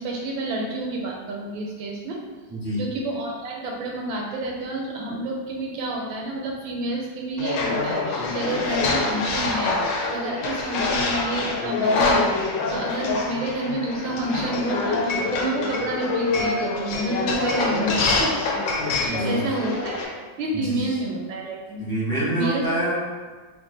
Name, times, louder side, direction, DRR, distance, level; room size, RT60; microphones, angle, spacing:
voice 1, 0.0-2.2 2.8-18.4 18.9-20.0 20.4-21.8 22.3-22.6, right 2 dB, 80° right, -1 dB, 1.4 m, -29 dB
voice 2, 2.5-2.8 19.1-19.4 20.5-20.8 21.8-22.9, right 1 dB, 15° right, -11 dB, 0.7 m, -26 dB
sound 1, 7.4-20.0, left 3 dB, 75° left, 1.1 m, -25 dB
3.1 x 2.6 x 3.7 m, 1.4 s
omnidirectional pair, 2.2 m